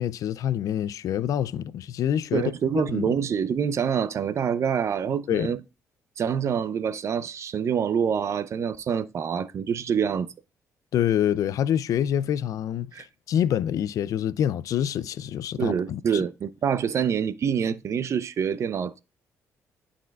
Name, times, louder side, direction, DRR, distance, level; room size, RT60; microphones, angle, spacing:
voice 1, 0.0-2.5 2.9-3.1 5.3-5.5 10.9-12.9 13.3-16.2, left 10 dB, 70° left, 0.4 m, -26 dB
voice 2, 2.3-5.6 6.2-10.3 12.9-13.1 15.6-19.0, right 7 dB, 55° right, 0.6 m, -26 dB
11.5 x 4.2 x 2.4 m
cardioid pair, 85°, 6 cm